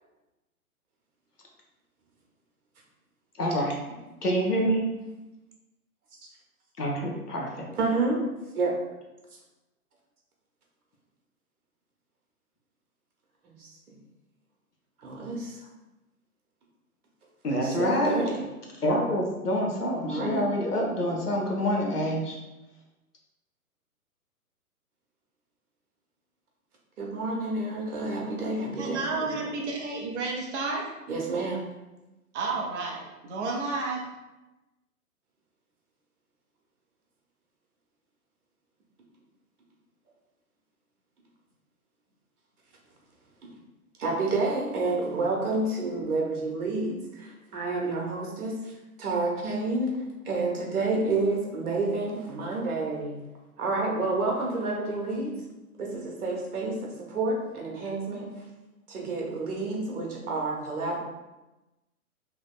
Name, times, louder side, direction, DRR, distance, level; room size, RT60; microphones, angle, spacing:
voice 1, 3.4-3.7 4.2-4.8 6.8-7.7 17.4-18.2 18.8-22.4, equal, 90° left, -1 dB, 1.0 m, -26 dB
voice 2, 7.7-8.2 8.5-8.7 13.4-13.7 15.0-15.6 17.6-18.4 20.0-20.5 27.0-29.3 31.1-31.6 43.4-43.5 44.0-50.0 50.2-53.2 53.6-55.4 55.7-58.3 58.9-61.0, right 3 dB, 70° right, -1 dB, 1.1 m, -29 dB
voice 3, 28.8-30.9 32.3-34.1, right 3 dB, 50° right, -1 dB, 0.8 m, -31 dB
3.3 x 2.9 x 2.3 m, 1.0 s
figure-of-eight pair, 125°, 45 cm